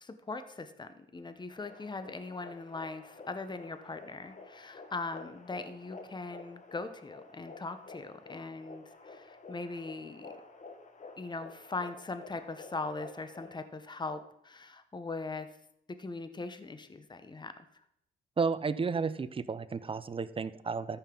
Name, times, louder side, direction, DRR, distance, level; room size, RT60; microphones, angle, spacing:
voice 1, 0.0-10.3 11.2-15.5 15.9-17.7, left 3 dB, 20° left, 10 dB, 0.8 m, -40 dB
sound 1, 1.5-13.7, left 3 dB, 40° left, 1.3 m, -51 dB
voice 2, 18.4-21.0, right 5 dB, 25° right, 14 dB, 0.5 m, -32 dB
14.0 x 5.6 x 3.8 m, 0.74 s
cardioid pair, 85°, 20 cm